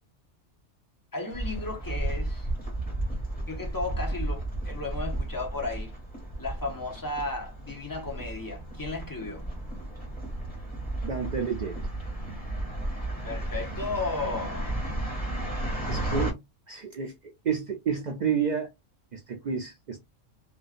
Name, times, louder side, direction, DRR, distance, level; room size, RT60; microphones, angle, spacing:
voice 1, 1.1-2.5 3.5-5.9 6.4-9.4 13.2-14.8, left 3 dB, 25° left, 0.4 m, -34 dB
sound 1, 1.3-16.3, right 1 dB, 5° left, 1.3 m, -33 dB
voice 2, 11.0-11.8 15.9-18.7 19.1-20.0, right 6 dB, 80° right, 0.4 m, -30 dB
2.6 x 2.2 x 2.3 m
omnidirectional pair, 1.3 m